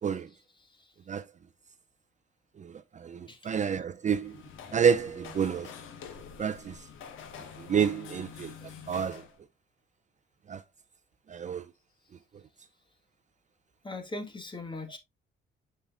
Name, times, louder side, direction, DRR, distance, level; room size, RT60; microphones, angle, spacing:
voice 1, 2.6-4.4 4.7-5.7 6.4-6.9 7.6-9.2 10.5-10.6 11.3-11.7, right 7 dB, 35° right, 0.5 m, -29 dB
sound 1, 4.0-9.4, left 7 dB, 85° left, 1.4 m, -46 dB
voice 2, 13.8-15.0, left 2 dB, 25° left, 1.7 m, -39 dB
7.2 x 5.6 x 2.5 m
cardioid pair, 90°, 20 cm